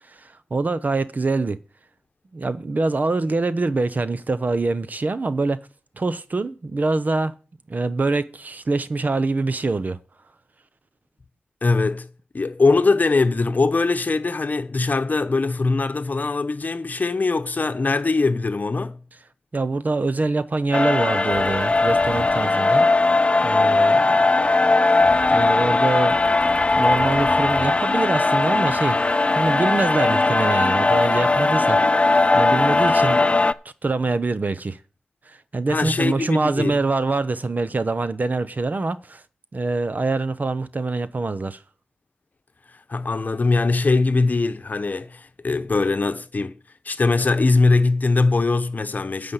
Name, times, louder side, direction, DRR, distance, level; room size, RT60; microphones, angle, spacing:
voice 1, 0.0-1.6 2.3-5.7 6.0-7.3 7.7-10.0 19.5-23.2 23.4-24.3 25.3-26.2 26.7-29.0 29.3-31.8 32.3-33.4 33.8-34.8 35.3-39.2 39.5-41.6, right 3 dB, 50° right, 0.8 m, -24 dB
voice 2, 11.6-12.1 12.3-19.0 35.7-36.8 42.9-46.6 46.8-49.3, left 3 dB, 55° left, 0.9 m, -21 dB
sound 1, 20.7-33.5, left 3 dB, 35° left, 0.4 m, -19 dB
sound 2, 21.3-31.4, equal, 75° right, 3.1 m, -44 dB
9.8 x 5.2 x 8.1 m
wide cardioid pair, 70°, 4 cm